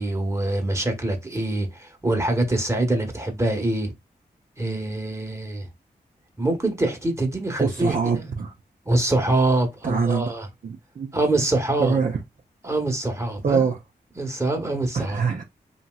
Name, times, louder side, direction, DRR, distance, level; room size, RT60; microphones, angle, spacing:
voice 1, 0.0-3.9 4.6-5.7 6.4-8.3 8.8-10.5 11.1-12.0 12.6-13.6 14.2-15.2, right 2 dB, 15° right, 1.1 m, -24 dB
voice 2, 7.6-8.5 9.8-10.3 10.6-11.1 11.8-12.2 13.4-13.8 14.9-15.4, right 6 dB, 50° right, 0.6 m, -24 dB
3.0 x 2.7 x 2.3 m
cardioid pair, 40°, 18 cm